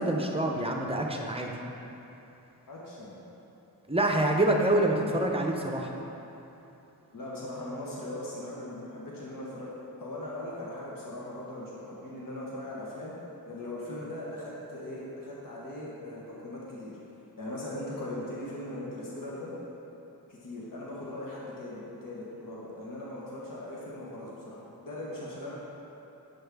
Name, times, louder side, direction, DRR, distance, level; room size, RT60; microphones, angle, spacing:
voice 1, 0.0-1.5 3.9-5.9, right 1 dB, 15° right, 1 dB, 0.7 m, -26 dB
voice 2, 2.7-3.2 7.1-9.7 10.0-13.1 13.4-16.9 17.4-19.5 20.3-25.6, left 1 dB, 60° left, -6 dB, 1.2 m, -39 dB
8.0 x 5.3 x 3.5 m, 3.0 s
wide cardioid pair, 70°, 37 cm